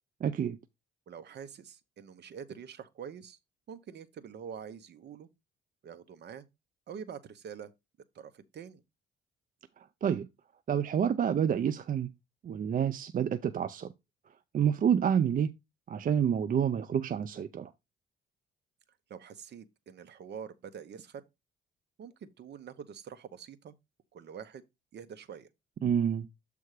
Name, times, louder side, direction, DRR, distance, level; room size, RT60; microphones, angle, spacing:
voice 1, 0.2-0.6 10.0-10.3 10.7-12.1 12.4-13.9 14.5-15.5 15.9-17.7 25.8-26.3, right 8 dB, 45° right, 0.5 m, -28 dB
voice 2, 1.1-3.4 3.7-5.3 5.8-6.4 6.9-7.7 8.1-8.8 19.1-21.2 22.0-23.7 24.1-24.6 24.9-25.5, right 7 dB, 60° right, 0.9 m, -45 dB
7.7 x 3.4 x 4.8 m
cardioid pair, 90°, 20 cm